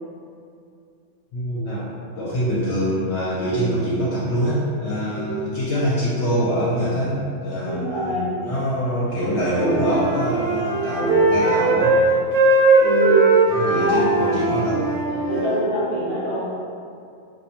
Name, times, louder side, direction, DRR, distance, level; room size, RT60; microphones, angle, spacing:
voice 1, 1.3-7.8 8.4-12.0 13.5-14.8, equal, 65° left, -9 dB, 0.8 m, -24 dB
voice 2, 5.1-5.6 7.6-8.4 12.8-13.3 13.8-14.1 15.3-16.5, right 1 dB, 35° right, -12 dB, 0.5 m, -24 dB
Wind instrument woodwind instrument, 9.2-12.1 12.3-15.6, right 2 dB, 90° right, 1.0 m, -19 dB
2.4 x 2.2 x 2.7 m, 2.4 s
omnidirectional pair, 1.3 m